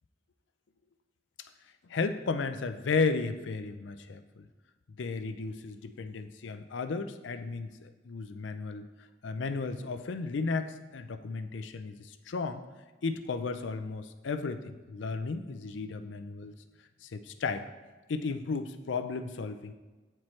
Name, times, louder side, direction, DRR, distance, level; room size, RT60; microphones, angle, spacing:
voice 1, 1.9-4.5 5.0-8.9 9.2-12.6 13.0-16.5 17.0-17.7 18.1-19.7, left 4 dB, 80° left, 9 dB, 0.5 m, -34 dB
8.7 x 4.5 x 3.2 m, 1.2 s
head